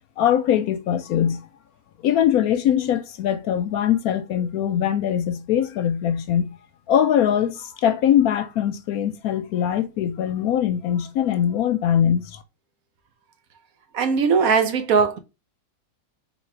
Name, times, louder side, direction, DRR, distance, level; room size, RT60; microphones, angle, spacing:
voice 1, 0.2-1.4 2.0-6.5 6.9-12.4, left 10 dB, 70° left, 1.0 m, -22 dB
voice 2, 13.9-15.2, right 5 dB, 65° right, 1.1 m, -19 dB
4.0 x 3.0 x 4.4 m
omnidirectional pair, 1.7 m